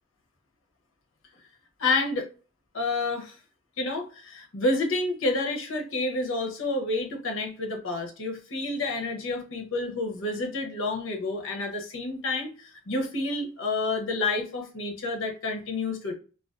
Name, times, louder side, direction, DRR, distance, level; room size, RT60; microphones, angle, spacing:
voice 1, 1.8-2.3 2.7-3.4 3.8-16.1, left 2 dB, 80° left, 2 dB, 0.7 m, -29 dB
2.4 x 2.2 x 2.3 m, 0.36 s
head